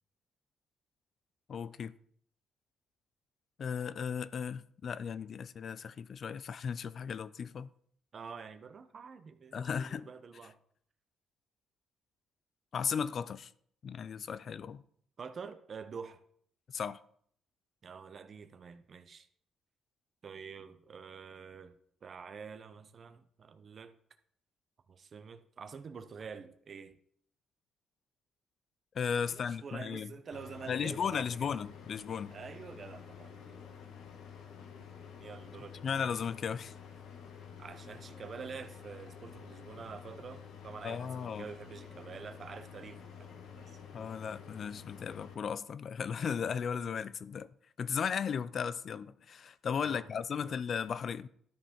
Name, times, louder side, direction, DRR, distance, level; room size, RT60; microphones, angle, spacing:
voice 1, 1.5-1.9 3.6-7.7 9.5-10.1 12.7-13.5 13.8-14.8 16.7-17.0 28.9-30.1 30.7-32.4 35.8-36.7 40.8-41.5 43.9-47.5 47.8-51.3, left 7 dB, 55° left, 0.4 m, -36 dB
voice 2, 8.1-10.6 15.2-16.2 17.8-19.3 20.2-23.9 24.9-27.0 29.3-31.6 32.3-33.4 35.2-35.9 37.6-43.8 49.8-50.1 50.3-50.6, right 5 dB, 45° right, 0.8 m, -47 dB
sound 1, 30.3-45.3, left 7 dB, 85° left, 1.4 m, -50 dB
12.5 x 5.5 x 4.3 m
cardioid pair, 90°, 0 cm